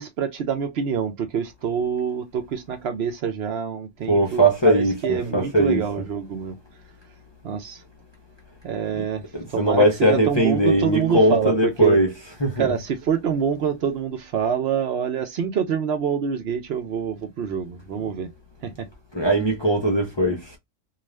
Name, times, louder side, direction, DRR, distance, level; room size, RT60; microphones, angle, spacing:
voice 1, 0.0-6.6 7.4-7.8 8.6-9.2 9.5-12.0 12.6-18.3 18.6-18.9, right 7 dB, 60° right, 0.8 m, -26 dB
voice 2, 4.1-5.8 8.9-9.1 9.3-12.1 12.4-12.7 19.1-20.6, right 1 dB, 30° left, 0.5 m, -20 dB
2.4 x 2.4 x 3.1 m
omnidirectional pair, 1.3 m